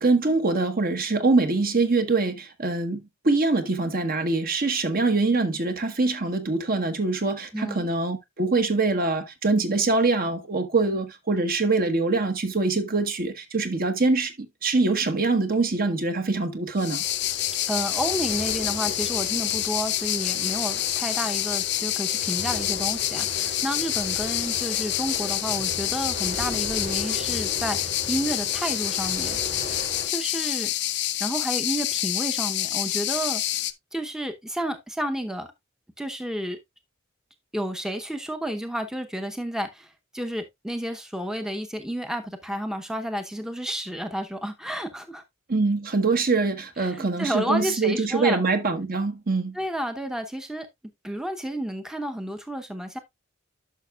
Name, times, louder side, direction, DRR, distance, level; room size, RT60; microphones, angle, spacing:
voice 1, 0.0-17.0 45.5-49.6, right 3 dB, 45° right, 1.1 m, -24 dB
voice 2, 7.5-7.9 17.7-29.4 30.1-30.7 31.2-33.4 33.9-35.5 36.0-36.6 37.5-45.2 46.8-48.4 49.5-50.7 51.0-53.0, equal, 5° right, 0.7 m, -31 dB
sound 1, 16.8-33.7, left 14 dB, 60° left, 0.6 m, -27 dB
sound 2, 17.0-30.1, left 1 dB, 65° right, 5.2 m, -38 dB
11.0 x 5.9 x 2.3 m
head